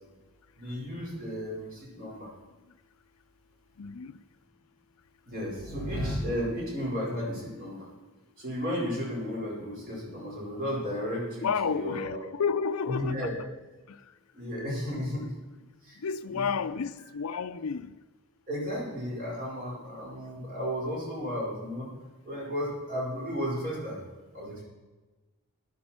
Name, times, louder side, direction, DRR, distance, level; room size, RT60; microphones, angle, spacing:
voice 1, 0.6-2.3 5.3-7.9 8.4-12.2 12.8-13.4 14.3-15.3 15.8-16.0 16.3-16.5 18.5-21.9 22.2-24.0 24.3-24.6, equal, 40° right, 4.8 m, -33 dB
voice 2, 3.8-4.1 11.4-13.3 16.0-17.9, left 6 dB, 85° left, 0.5 m, -31 dB
14.0 x 11.5 x 4.4 m
head